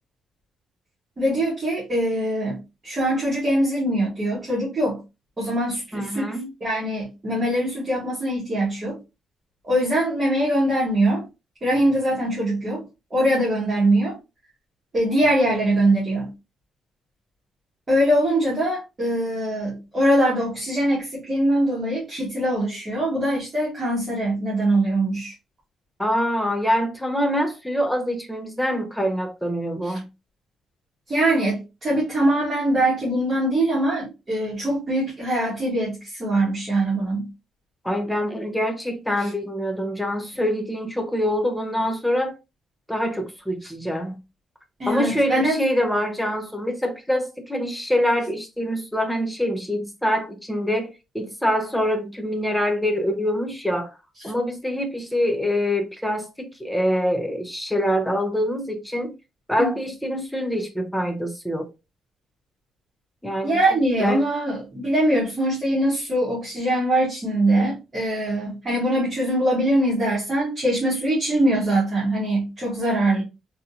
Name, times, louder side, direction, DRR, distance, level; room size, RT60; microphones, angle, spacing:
voice 1, 1.2-2.6 2.8-5.0 5.4-9.0 9.6-11.2 11.6-12.8 13.1-14.2 14.9-16.3 17.9-25.3 29.8-30.0 31.1-37.3 39.2-39.3 44.8-45.6 59.6-59.7 63.4-73.2, right 1 dB, 20° right, 1.4 m, -22 dB
voice 2, 5.9-6.5 26.0-30.1 37.8-42.3 42.9-44.2 44.9-53.9 54.2-59.1 59.5-61.7 63.2-63.6 64.0-64.2, equal, 5° left, 0.6 m, -25 dB
3.6 x 2.8 x 2.6 m
cardioid pair, 175°, 0 cm